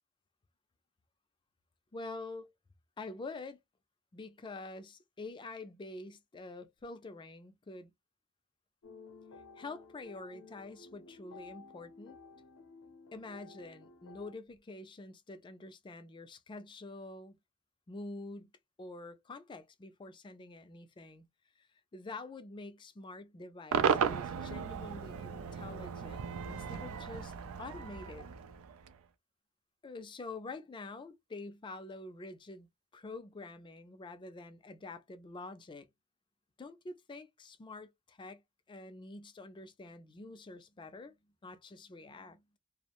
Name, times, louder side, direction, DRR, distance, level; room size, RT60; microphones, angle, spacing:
voice 1, 1.9-2.5 3.0-3.6 4.1-7.9 9.6-12.2 13.1-17.4 17.9-18.5 18.8-21.3 21.6-27.3 27.6-28.3 29.8-32.7 32.9-35.9 36.6-38.4 38.7-41.1 41.4-42.4, left 2 dB, 20° left, 0.3 m, -47 dB
sound 1, 8.8-14.3, left 4 dB, 85° left, 0.5 m, -54 dB
Cheering / Crowd / Fireworks, 23.7-29.0, right 7 dB, 70° right, 0.4 m, -35 dB
2.3 x 2.0 x 2.8 m
head